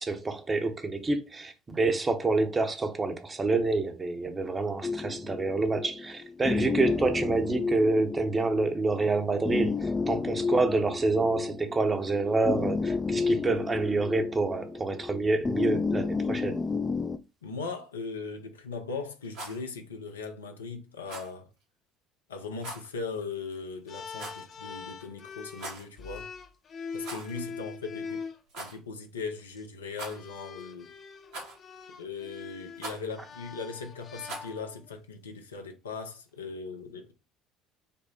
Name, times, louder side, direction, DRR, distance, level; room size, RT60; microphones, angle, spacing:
voice 1, 0.0-16.6, right 3 dB, 25° right, 0.9 m, -27 dB
sound 1, 4.8-17.2, left 4 dB, 25° left, 0.4 m, -31 dB
voice 2, 17.4-21.5 22.3-26.3 26.9-28.3 28.6-30.9 32.0-37.1, left 4 dB, 85° left, 0.6 m, -39 dB
Rattle, 19.2-19.6 21.0-21.3 22.6-22.9 24.1-24.5 25.5-25.9 27.0-27.4 27.7-27.8 28.5-28.8 29.9-30.4 31.3-31.7 32.8-33.1 34.2-34.6, right 2 dB, 70° right, 1.8 m, -41 dB
sound 2, 23.9-28.4 29.4-29.6 30.1-34.9, left 5 dB, 45° left, 0.7 m, -42 dB
5.3 x 2.1 x 4.1 m
figure-of-eight pair, 60°, 0 cm